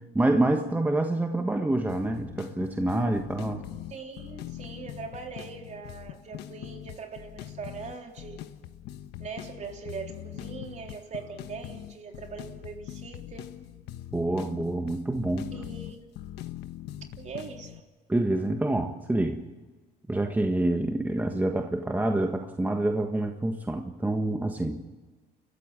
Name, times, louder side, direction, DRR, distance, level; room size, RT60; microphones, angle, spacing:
voice 1, 0.1-3.6 14.1-15.5 18.1-19.4 20.1-24.8, right 1 dB, 10° right, 4 dB, 1.5 m, -27 dB
sound 1, 1.9-17.8, left 12 dB, 85° left, 1.2 m, -42 dB
voice 2, 3.9-8.4 9.2-13.5 15.5-16.1 17.2-17.8, right 5 dB, 45° right, 3 dB, 3.5 m, -41 dB
29.5 x 14.5 x 7.6 m, 1.3 s
cardioid pair, 110°, 17 cm